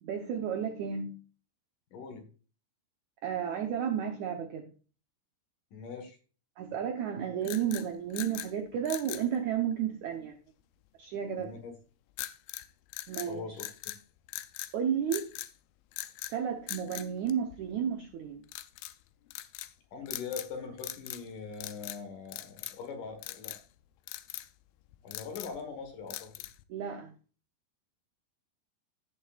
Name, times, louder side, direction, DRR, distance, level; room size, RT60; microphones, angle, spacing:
voice 1, 0.0-1.2 3.2-4.7 6.6-10.4 11.0-11.5 13.1-13.6 14.7-15.3 16.3-18.4 26.7-27.1, right 8 dB, 75° right, 1.7 m, -32 dB
voice 2, 1.9-2.3 5.7-6.2 11.4-11.7 13.3-13.7 19.9-23.6 25.0-26.3, left 5 dB, 60° left, 2.7 m, -42 dB
sound 1, 7.4-8.5 8.9-9.3 12.2-12.7 12.9-14.0 14.3-14.7 15.1-15.5 15.9-16.4 16.7-17.9 18.5-19.0 19.3-19.7 20.1-20.5 20.8-21.3 21.5-22.0 22.3-22.9 23.2-23.6 24.1-24.5 24.9-25.6 26.1-26.6, left 15 dB, 80° left, 2.2 m, -41 dB
16.5 x 6.9 x 2.4 m
omnidirectional pair, 4.6 m